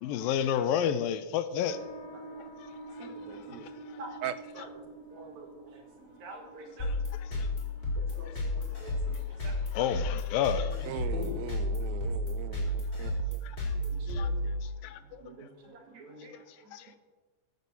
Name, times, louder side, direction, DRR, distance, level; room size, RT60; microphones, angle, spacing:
voice 1, 0.0-1.8 3.0-3.7 4.6-4.7 6.8-7.5 8.3-8.4 9.7-11.1 13.4-13.7 14.1-14.3 14.6-15.2 16.7-17.0, left 9 dB, 85° left, 12 dB, 2.4 m, -32 dB
sound 1, 1.6-12.7, right 2 dB, 40° left, 4.6 m, -50 dB
voice 2, 3.0-3.7 4.0-4.1 4.5-4.7 5.1-5.5 6.2-6.9 8.2-9.1 9.4-9.5 10.6-11.0 13.8-14.3 15.2-16.3, right 3 dB, 60° right, 3 dB, 2.9 m, -47 dB
voice 3, 5.8-6.3 6.6-6.9 9.0-9.6 11.1-12.1 15.3-15.9 16.3-16.8, left 1 dB, 30° right, -2 dB, 4.7 m, -47 dB
sound 2, 6.8-15.0, left 1 dB, 25° left, 5.2 m, -32 dB
voice 4, 10.9-13.1, right 12 dB, 85° right, 12 dB, 2.3 m, -39 dB
15.0 x 8.1 x 6.8 m, 1.2 s
omnidirectional pair, 4.1 m